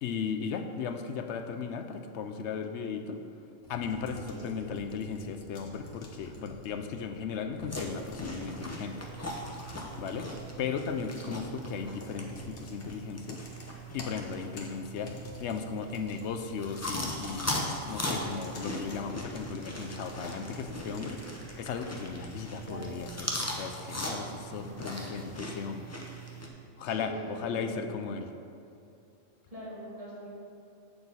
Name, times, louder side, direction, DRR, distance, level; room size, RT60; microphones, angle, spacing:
voice 1, 0.0-3.2 3.7-9.0 10.0-10.3 10.6-11.4 11.7-13.4 13.9-15.1 15.4-17.6 17.8-21.2 21.6-25.9 26.8-28.3, left 6 dB, 70° left, 7 dB, 0.8 m, -36 dB
sound 1, 3.6-23.3, left 1 dB, 50° left, 1.2 m, -49 dB
sound 2, 7.7-26.5, equal, 15° left, 0.6 m, -39 dB
voice 2, 26.8-27.9 29.5-30.3, right 1 dB, 30° right, -6 dB, 2.0 m, -42 dB
8.0 x 6.8 x 4.0 m, 2.5 s
omnidirectional pair, 1.3 m